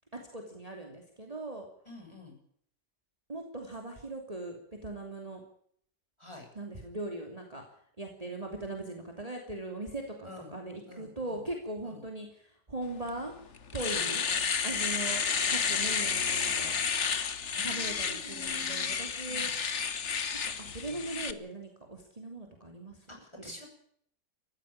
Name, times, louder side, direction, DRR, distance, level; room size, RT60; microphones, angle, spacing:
voice 1, 0.1-1.7 3.3-5.4 6.5-7.6 8.0-13.3 13.7-14.3 14.6-16.8 17.6-19.8 20.4-23.5, right 2 dB, 20° right, 2 dB, 3.0 m, -40 dB
voice 2, 1.9-2.4 6.2-6.5 10.2-10.5 10.9-11.4 11.8-12.0 13.9-14.1 17.5-19.0 19.2-19.5 23.1-23.7, left 2 dB, 15° left, 2 dB, 7.3 m, -48 dB
Domestic sounds home sounds, 13.1-13.2 13.6-21.3, left 6 dB, 45° left, 1.5 m, -31 dB
19.5 x 15.0 x 8.8 m, 0.65 s
omnidirectional pair, 1.8 m